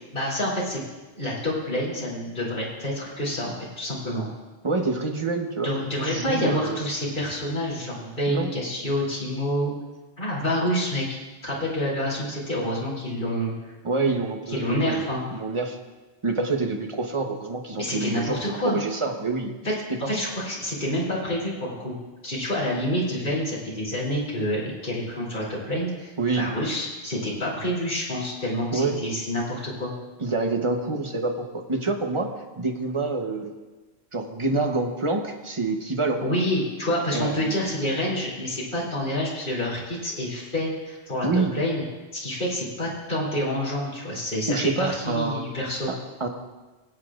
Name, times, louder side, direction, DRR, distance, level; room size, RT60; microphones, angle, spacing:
voice 1, 0.1-0.8 1.2-4.3 5.6-9.7 10.2-11.0 11.4-13.5 14.5-15.2 17.8-18.8 19.6-19.7 20.1-21.9 22.2-29.9 36.2-41.8 42.1-45.9, left 1 dB, 50° left, -6 dB, 3.3 m, -28 dB
voice 2, 4.6-5.7 6.0-6.8 8.3-8.5 13.8-15.1 15.3-15.8 16.2-18.4 18.6-19.5 19.9-20.1 26.2-26.5 28.7-29.0 30.2-32.3 32.6-33.5 34.1-36.2 37.1-37.6 41.2-41.5 44.5-45.5 45.9-46.3, right 3 dB, 30° right, 3 dB, 1.0 m, -27 dB
24.5 x 8.3 x 2.5 m, 1.2 s
omnidirectional pair, 1.2 m